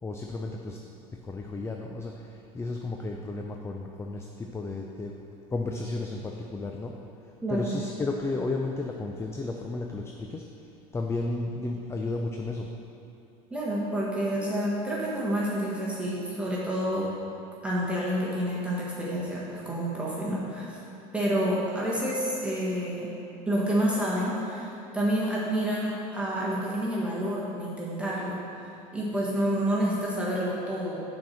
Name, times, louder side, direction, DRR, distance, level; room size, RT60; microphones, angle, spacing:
voice 1, 0.0-0.8 1.2-5.1 5.5-6.9 7.2-12.7, left 3 dB, 15° left, 1 dB, 0.4 m, -33 dB
voice 2, 7.4-7.7 13.5-17.1 17.6-20.8 21.1-23.1 23.5-28.4 28.9-31.0, equal, 5° right, -7 dB, 1.4 m, -28 dB
5.9 x 4.4 x 6.4 m, 2.8 s
supercardioid pair, 100°, 19 cm